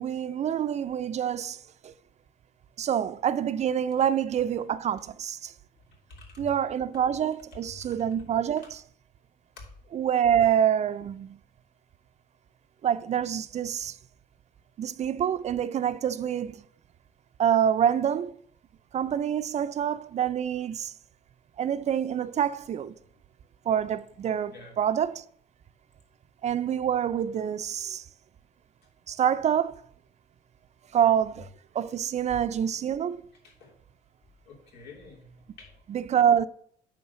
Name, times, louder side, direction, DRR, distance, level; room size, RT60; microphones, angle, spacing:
voice 1, 0.0-1.9 2.8-5.5 6.4-8.8 9.9-11.4 12.8-14.0 14.8-16.6 17.4-18.4 18.9-20.9 21.6-22.9 23.7-25.2 26.4-28.0 29.1-29.7 30.9-31.5 31.7-33.2 35.9-36.4, right 9 dB, 40° right, 0.5 m, -26 dB
voice 2, 6.1-6.5 9.6-9.7 24.5-24.8 33.4-33.7 34.4-35.8, left 3 dB, 85° left, 2.9 m, -48 dB
9.5 x 3.4 x 6.8 m
cardioid pair, 110°, 17 cm